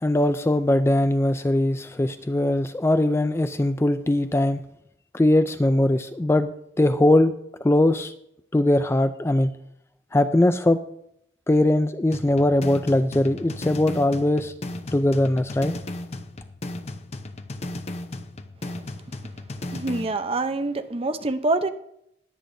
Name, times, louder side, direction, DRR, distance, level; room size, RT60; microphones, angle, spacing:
voice 1, 0.0-4.6 5.1-7.3 7.6-8.1 8.5-9.5 10.1-10.8 11.5-14.5 14.9-15.7, left 1 dB, 15° left, 10 dB, 0.4 m, -21 dB
sound 1, 12.1-20.1, left 1 dB, 35° left, 0.8 m, -35 dB
voice 2, 19.7-21.7, right 2 dB, 30° right, 9 dB, 0.7 m, -26 dB
21.5 x 8.3 x 2.7 m, 0.74 s
head